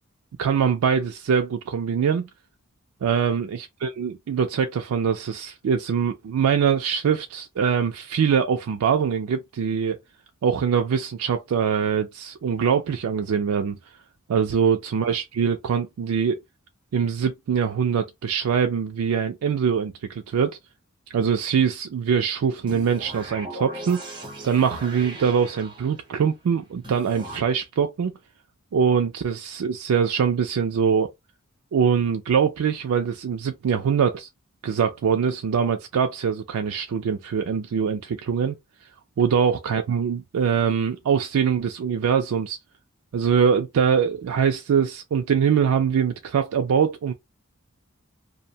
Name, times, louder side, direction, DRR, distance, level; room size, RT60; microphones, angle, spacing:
voice 1, 0.4-2.3 3.0-10.0 10.4-13.8 14.3-16.4 16.9-20.6 21.1-24.0 24.4-28.1 28.7-31.1 31.7-34.3 34.6-38.5 39.2-42.6 43.1-47.1, right 7 dB, 90° right, 0.4 m, -23 dB
sound 1, 22.7-26.1 26.8-27.4, right 1 dB, 20° right, 0.7 m, -38 dB
2.6 x 2.1 x 2.7 m
head